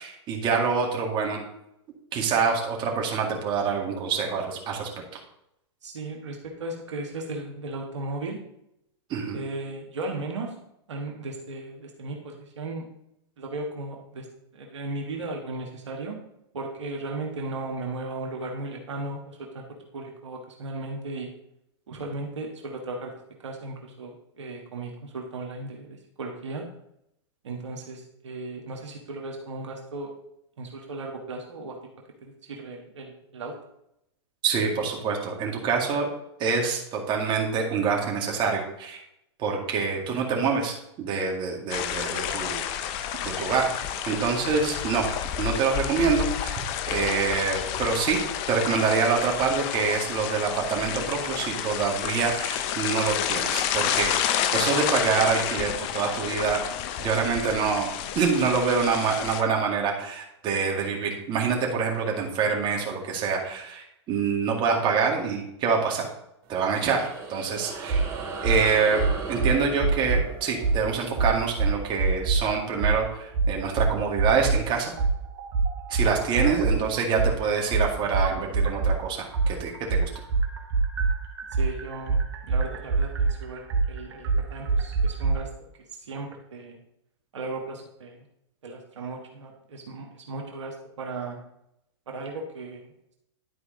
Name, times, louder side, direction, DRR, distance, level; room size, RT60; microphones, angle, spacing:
voice 1, 0.0-1.4 2.1-4.9 9.1-9.4 34.4-36.1 36.4-39.0 39.4-42.6 43.2-45.1 45.4-46.6 46.9-48.2 48.5-56.6 57.0-57.9 58.1-66.1 66.5-68.0 68.4-69.0 69.3-74.9 75.9-80.1, right 5 dB, 35° right, 0 dB, 2.1 m, -26 dB
voice 2, 5.8-8.4 9.3-10.6 10.9-12.9 13.4-14.3 14.5-16.2 16.5-19.6 19.9-21.3 21.9-26.7 27.4-30.1 30.6-31.8 32.2-33.6 81.6-85.5 86.0-86.8 87.3-88.2 88.6-91.4 92.1-92.9, right 2 dB, 85° right, 1 dB, 1.6 m, -36 dB
sound 1, 41.7-59.4, left 10 dB, 40° left, 0.7 m, -30 dB
sound 2, 66.4-73.3, right 4 dB, 50° right, 3.1 m, -38 dB
sound 3, 67.9-68.1 68.4-68.6 69.0-70.3 70.6-70.8 71.2-72.4 72.8-73.0 73.3-74.6 75.0-79.0 79.3-85.3, right 4 dB, 65° right, 1.9 m, -24 dB
11.0 x 4.7 x 3.9 m, 0.80 s
hypercardioid pair, 125°, 15 cm